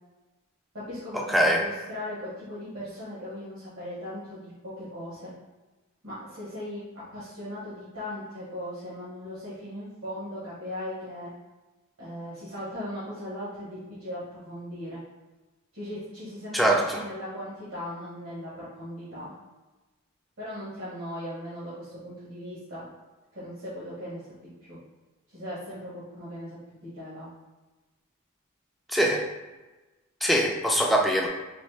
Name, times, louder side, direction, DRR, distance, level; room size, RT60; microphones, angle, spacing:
voice 1, 0.7-5.3 6.0-11.3 12.0-15.0 15.7-19.3 20.4-22.9 23.3-24.2 24.7-24.8 25.3-27.3, left 1 dB, 70° right, -11 dB, 1.3 m, -38 dB
voice 2, 1.3-1.6 16.5-17.0 28.9-29.2 30.2-31.3, right 1 dB, ahead, -1 dB, 0.4 m, -22 dB
4.1 x 2.6 x 3.3 m, 1.2 s
head